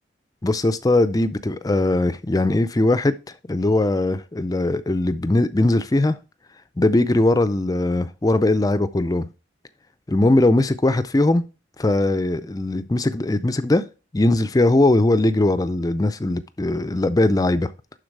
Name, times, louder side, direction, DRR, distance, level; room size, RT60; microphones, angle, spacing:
voice 1, 0.4-3.1 3.5-6.2 6.8-9.3 10.1-11.4 11.8-13.8 14.1-17.7, left 2 dB, 20° left, 0.4 m, -20 dB
11.5 x 4.0 x 4.6 m
head